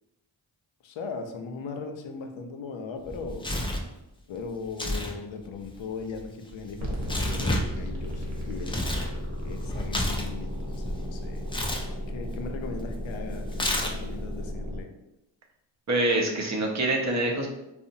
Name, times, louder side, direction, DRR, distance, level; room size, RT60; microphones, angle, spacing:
voice 1, 0.8-3.4 4.3-8.8 9.4-11.4 12.1-14.9, left 4 dB, 65° left, 5 dB, 0.6 m, -38 dB
Tearing, 3.0-3.9 4.7-5.1 5.4-9.1 9.4-10.9 11.5-11.9 13.5-14.2, left 1 dB, 10° left, 0.4 m, -31 dB
sound 1, 6.8-14.8, equal, 70° right, 0.9 m, -34 dB
voice 2, 15.9-17.5, right 2 dB, 35° right, 1 dB, 0.6 m, -25 dB
2.8 x 2.0 x 2.6 m, 0.91 s
supercardioid pair, 45°, 50 cm